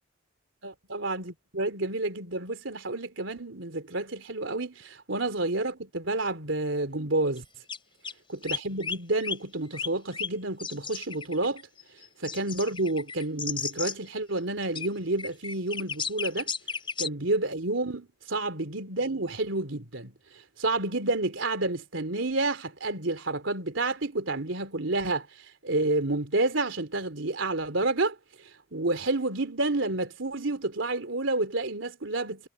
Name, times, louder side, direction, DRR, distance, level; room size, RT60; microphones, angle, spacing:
voice 1, 0.6-7.4 8.3-11.6 12.2-16.5 17.0-20.1 20.6-25.3 25.6-28.1 28.7-32.5, right 2 dB, 85° right, 3.1 m, -29 dB
sound 1, 7.4-7.5 7.7-7.8 8.0-8.1 8.4-9.0 9.2-9.4 9.7-10.3 10.6-13.9 14.6-14.9 15.2-17.1, left 6 dB, 30° left, 3.8 m, -33 dB
head